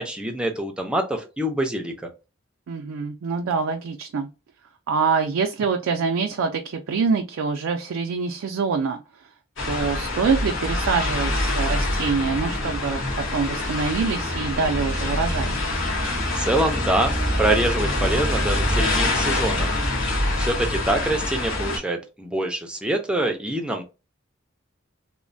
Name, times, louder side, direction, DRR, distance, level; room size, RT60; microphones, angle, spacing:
voice 1, 0.0-2.1 16.4-19.9 20.4-23.8, right 1 dB, 5° right, 0.4 m, -25 dB
voice 2, 2.7-4.3 4.9-9.3 9.6-13.0 13.3-15.6, right 5 dB, 75° right, 0.4 m, -25 dB
sound 1, 9.6-21.8, left 1 dB, 65° left, 1.4 m, -25 dB
3.0 x 2.1 x 2.5 m
head